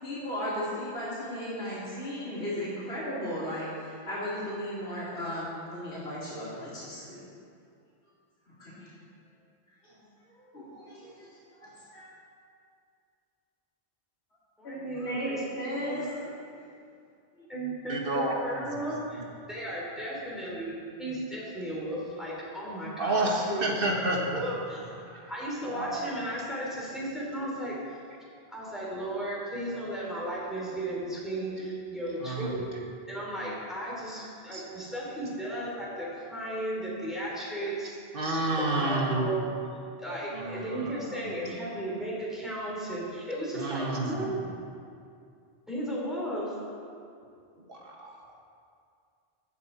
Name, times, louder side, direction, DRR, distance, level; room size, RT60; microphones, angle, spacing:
voice 1, 0.0-3.7 4.1-7.2 8.5-8.9 9.8-11.3 11.5-12.1 14.6-16.3, equal, 80° left, -10 dB, 3.3 m, -36 dB
voice 2, 14.6-16.0 17.5-19.2 19.5-24.8 25.3-28.0 28.5-32.6 33.1-38.0 38.7-39.5 40.0-44.3 45.7-46.5, right 1 dB, ahead, -6 dB, 3.0 m, -35 dB
voice 3, 17.9-18.9 19.1-19.2 23.0-24.2 25.0-25.3 25.7-26.0 32.2-32.5 34.5-34.6 38.1-39.3 40.3-41.6 43.5-44.5 47.7-48.4, right 2 dB, 55° right, 0 dB, 1.8 m, -30 dB
14.5 x 8.9 x 4.4 m, 2.4 s
omnidirectional pair, 1.1 m